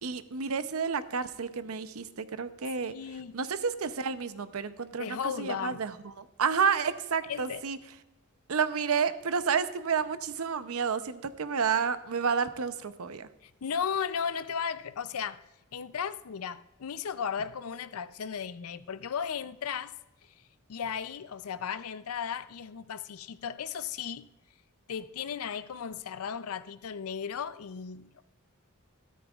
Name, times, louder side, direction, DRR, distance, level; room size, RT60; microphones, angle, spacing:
voice 1, 0.0-2.9 3.3-7.8 8.5-13.3, right 6 dB, 75° right, 0.7 m, -30 dB
voice 2, 2.8-3.4 5.0-5.8 7.3-7.6 13.4-15.5 15.7-20.3 20.7-24.3 24.9-28.2, left 7 dB, 75° left, 0.5 m, -35 dB
13.5 x 12.5 x 2.4 m
head